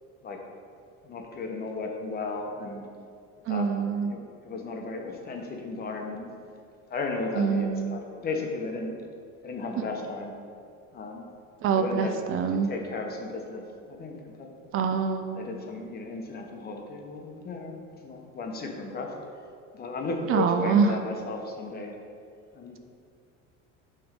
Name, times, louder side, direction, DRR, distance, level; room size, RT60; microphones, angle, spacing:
voice 1, 1.0-2.9 3.5-6.3 6.9-9.0 9.4-10.3 10.9-11.3 11.7-12.2 12.5-14.6 15.4-19.1 19.7-21.9 22.5-22.8, left 3 dB, 30° left, 2 dB, 1.0 m, -35 dB
voice 2, 3.5-4.2 7.4-8.0 9.8-9.9 11.6-12.7 14.7-15.5 20.3-21.0, right 6 dB, 45° right, 7 dB, 0.5 m, -25 dB
8.9 x 3.5 x 5.2 m, 2.3 s
cardioid pair, 135°, 30 cm